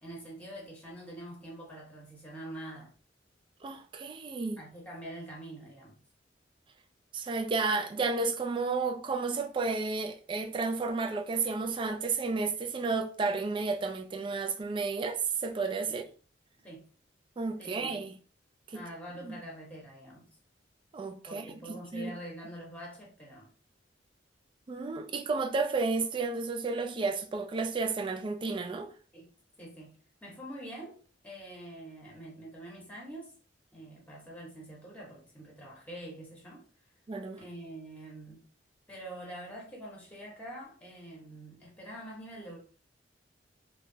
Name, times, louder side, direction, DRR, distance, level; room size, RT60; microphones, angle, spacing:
voice 1, 0.0-2.9 4.6-6.0 15.9-16.0 16.6-16.9 17.6-17.9 18.7-20.3 21.3-23.5 29.1-29.9 30.2-33.3 33.7-36.6 37.4-38.4 38.9-42.6, right 1 dB, 10° left, 0.9 m, -45 dB
voice 2, 3.6-4.6 7.1-16.0 17.4-18.1 18.7-18.8 19.2-19.4 20.9-22.1 24.7-28.9 37.1-37.4, right 4 dB, 25° right, 0.3 m, -32 dB
3.0 x 2.2 x 2.7 m
head